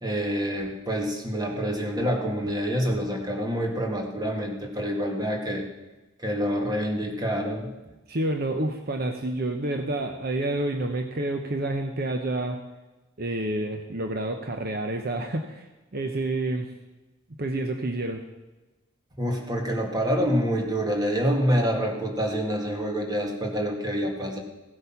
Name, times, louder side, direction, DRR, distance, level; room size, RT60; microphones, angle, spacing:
voice 1, 0.0-5.7 6.2-7.7 19.2-24.4, equal, 20° right, 1 dB, 1.8 m, -27 dB
voice 2, 8.1-12.6 13.2-16.7 17.4-18.2, right 1 dB, 50° right, 5 dB, 0.9 m, -29 dB
16.0 x 8.2 x 5.8 m, 1.1 s
head